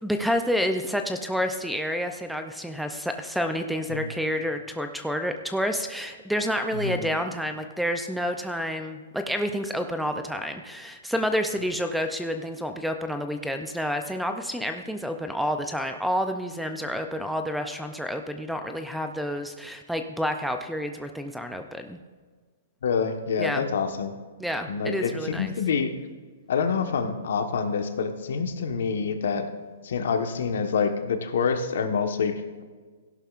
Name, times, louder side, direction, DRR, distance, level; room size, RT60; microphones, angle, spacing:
voice 1, 0.0-22.0 23.4-23.6 24.4-25.5, equal, ahead, 7 dB, 0.4 m, -29 dB
voice 2, 22.8-24.1 24.7-25.9 26.5-29.5 29.8-32.6, left 5 dB, 65° left, 6 dB, 1.2 m, -27 dB
16.5 x 11.0 x 2.5 m, 1.5 s
hypercardioid pair, 165°, 0 cm